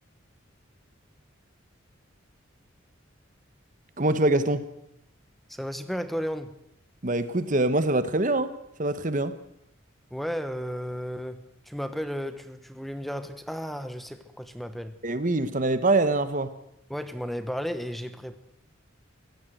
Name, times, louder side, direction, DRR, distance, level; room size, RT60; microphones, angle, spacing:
voice 1, 4.0-4.6 7.0-8.5 8.8-9.3 15.0-16.5, right 2 dB, 40° right, 12 dB, 1.2 m, -24 dB
voice 2, 5.5-6.5 10.1-15.0 16.9-18.4, equal, ahead, 10 dB, 1.1 m, -34 dB
24.5 x 16.0 x 7.9 m, 0.77 s
head